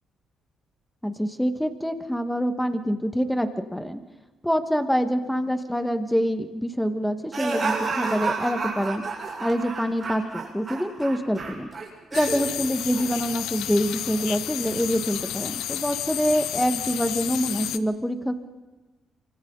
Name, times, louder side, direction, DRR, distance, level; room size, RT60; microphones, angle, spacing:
voice 1, 1.0-4.0 4.4-9.0 9.4-11.7 12.1-18.4, equal, 5° left, 8 dB, 1.9 m, -26 dB
sound 1, 7.3-12.5 12.9-13.1, right 4 dB, 35° right, 7.4 m, -30 dB
sound 2, 12.1-17.8, left 12 dB, 85° left, 0.8 m, -31 dB
27.5 x 25.5 x 4.2 m, 1.2 s
cardioid pair, 90°, 0 cm